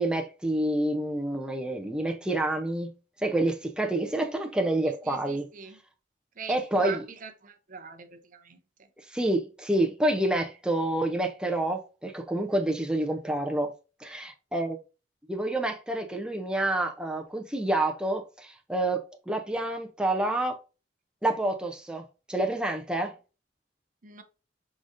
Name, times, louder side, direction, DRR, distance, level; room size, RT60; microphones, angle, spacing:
voice 1, 0.0-2.9 3.2-5.5 6.5-7.0 9.1-13.7 14.0-14.8 15.3-20.6 21.2-22.0 22.3-23.1, right 1 dB, 5° right, 0.5 m, -28 dB
voice 2, 4.8-5.8 6.4-8.9 24.0-24.2, right 6 dB, 45° right, 0.6 m, -43 dB
4.9 x 3.9 x 2.6 m
head